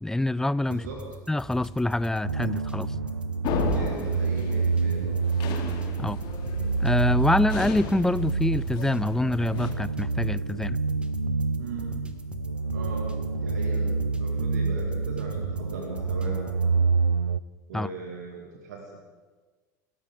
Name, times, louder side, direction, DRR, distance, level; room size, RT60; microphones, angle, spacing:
voice 1, 0.0-0.8 1.3-2.9 6.0-6.2 6.8-10.8 17.7-17.9, left 2 dB, 5° left, 19 dB, 0.4 m, -25 dB
sound 1, 0.6-16.7, right 1 dB, 10° right, 1.5 m, -42 dB
voice 2, 0.7-1.2 3.7-5.2 11.6-12.0 12.7-16.9 17.7-19.0, right 4 dB, 65° right, 1 dB, 2.1 m, -39 dB
sound 2, 2.2-17.4, right 4 dB, 90° right, 0.4 m, -28 dB
sound 3, 3.4-9.7, left 6 dB, 50° left, 2.5 m, -35 dB
26.5 x 14.0 x 3.7 m, 1.4 s
figure-of-eight pair, 75°, 10 cm